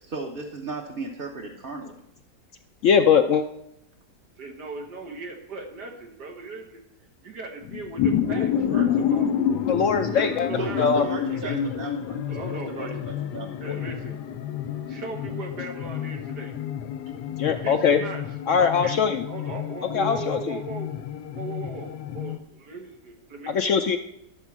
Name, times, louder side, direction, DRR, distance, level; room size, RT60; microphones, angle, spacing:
voice 1, 0.0-2.0 10.6-12.2 12.5-13.7, right 3 dB, 40° right, -1 dB, 0.9 m, -35 dB
voice 2, 2.8-3.4 9.7-10.5 10.8-11.0 13.7-13.8 17.4-18.0 18.5-19.2 19.9-20.6 23.5-24.0, left 6 dB, 70° left, 7 dB, 0.7 m, -21 dB
voice 3, 4.4-6.8 7.2-9.4 10.0-11.6 12.2-13.0 13.6-14.2 14.9-16.6 17.5-18.2 18.6-20.9 21.3-23.7, right 3 dB, 85° right, 2 dB, 2.1 m, -38 dB
sound 1, 7.6-22.4, left 8 dB, 85° left, 1.2 m, -29 dB
12.0 x 4.4 x 7.2 m, 0.78 s
omnidirectional pair, 1.7 m